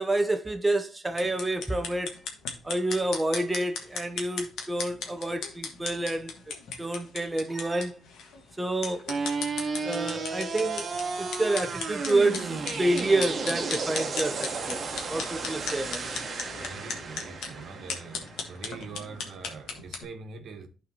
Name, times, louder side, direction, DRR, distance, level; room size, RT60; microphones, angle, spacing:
voice 1, 0.0-2.2 2.6-6.3 6.8-8.0 8.6-9.1 9.8-10.9 11.2-14.8 15.1-16.0, right 2 dB, 15° right, 0.6 m, -28 dB
sound 1, 1.1-20.0, left 5 dB, 80° left, 1.5 m, -38 dB
sound 2, 9.1-19.1, right 4 dB, 45° right, 1.3 m, -33 dB
voice 2, 16.6-20.7, right 5 dB, 70° right, 1.2 m, -43 dB
12.0 x 4.3 x 2.8 m
cardioid pair, 90°, 0 cm